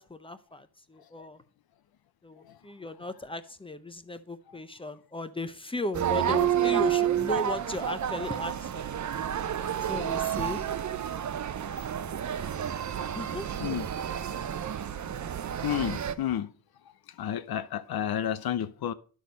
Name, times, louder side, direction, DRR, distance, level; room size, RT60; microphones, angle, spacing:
voice 1, 0.0-1.4 2.2-8.8 9.9-10.6 13.1-13.5 15.0-15.5, left 2 dB, 15° left, 0.6 m, -36 dB
sound 1, 5.9-16.1, right 10 dB, 50° right, 0.7 m, -30 dB
voice 2, 15.6-16.5 17.2-18.9, left 10 dB, 80° left, 0.6 m, -31 dB
11.0 x 6.4 x 5.1 m
wide cardioid pair, 155°, 37 cm